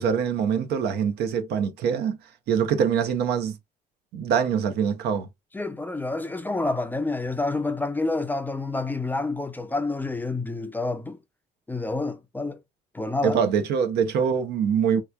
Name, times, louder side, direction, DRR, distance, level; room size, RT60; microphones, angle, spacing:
voice 1, 0.0-2.2 2.5-3.6 4.1-5.3 13.2-15.0, right 7 dB, 75° right, 0.8 m, -24 dB
voice 2, 5.5-11.2 11.7-12.6 12.9-13.4, left 2 dB, 10° left, 0.4 m, -28 dB
3.4 x 3.0 x 2.3 m
cardioid pair, 110°, 17 cm